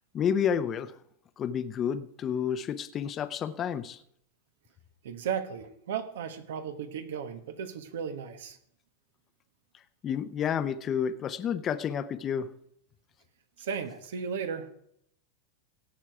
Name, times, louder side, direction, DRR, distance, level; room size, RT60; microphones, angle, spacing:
voice 1, 0.1-0.9 1.4-4.0 10.0-12.5, left 8 dB, 25° left, 12 dB, 0.7 m, -30 dB
voice 2, 5.0-8.6 13.6-14.7, right 7 dB, 85° right, 9 dB, 1.4 m, -35 dB
17.5 x 6.3 x 4.8 m, 0.68 s
supercardioid pair, 145°, 0 cm